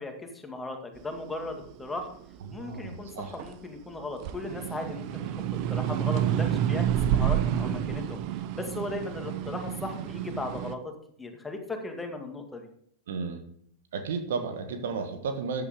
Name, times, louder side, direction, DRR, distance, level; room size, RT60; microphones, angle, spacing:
voice 1, 0.0-2.1 2.5-5.2 5.7-8.2 8.5-10.9 11.2-12.7, left 2 dB, 10° left, 4 dB, 2.1 m, -37 dB
sound 1, 1.1-3.7 4.1-10.7, right 10 dB, 45° right, 0.8 m, -29 dB
voice 2, 2.4-3.4 13.1-13.4 13.9-15.7, right 5 dB, 60° right, 8 dB, 1.4 m, -33 dB
14.0 x 9.5 x 3.7 m, 0.65 s
figure-of-eight pair, 90°, 0 cm